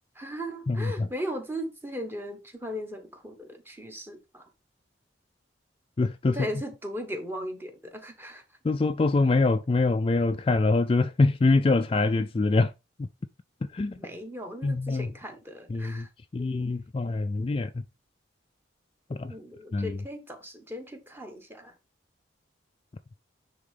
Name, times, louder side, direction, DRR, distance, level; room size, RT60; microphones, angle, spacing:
voice 1, 0.1-4.5 6.3-8.4 14.0-16.1 19.3-21.7, equal, 10° right, 1.2 m, -37 dB
voice 2, 0.7-1.1 6.0-6.4 8.6-12.7 13.7-13.9 14.6-15.1 15.7-16.1 16.3-17.7 19.1-19.3 19.7-19.9, left 3 dB, 30° left, 0.3 m, -24 dB
9.8 x 3.7 x 3.4 m
head